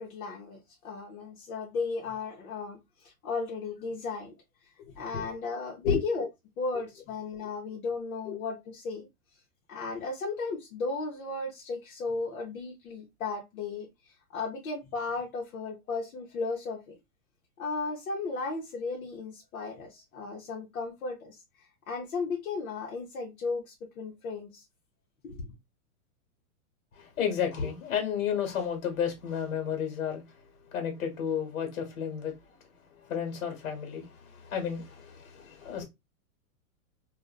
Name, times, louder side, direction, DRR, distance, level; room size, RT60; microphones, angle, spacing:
voice 1, 0.0-4.3 5.0-6.3 6.6-9.1 9.7-13.9 14.3-16.9 17.6-24.6 25.2-25.5, left 4 dB, 85° left, 0.9 m, -35 dB
voice 2, 26.9-32.6 33.0-35.8, left 7 dB, 70° left, 1.3 m, -32 dB
2.5 x 2.2 x 2.3 m
supercardioid pair, 155°, 42 cm